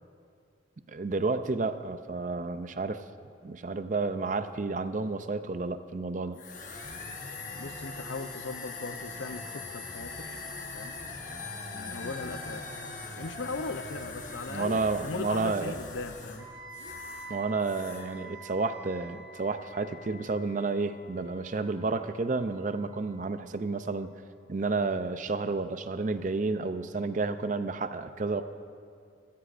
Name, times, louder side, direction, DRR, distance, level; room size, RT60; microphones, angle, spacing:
voice 1, 0.9-3.0 3.4-6.4 14.5-15.8 17.3-24.1 24.5-28.4, right 3 dB, 40° right, 11 dB, 0.5 m, -31 dB
sound 1, 6.3-17.3 17.6-18.1, left 3 dB, 40° left, 1.1 m, -41 dB
voice 2, 7.6-10.4 10.7-11.0 11.7-12.7 13.1-16.5, left 3 dB, 80° left, 10 dB, 0.6 m, -38 dB
Wind instrument woodwind instrument, 16.4-24.3, right 2 dB, 20° right, 2.0 m, -49 dB
24.5 x 13.0 x 2.5 m, 2.3 s
head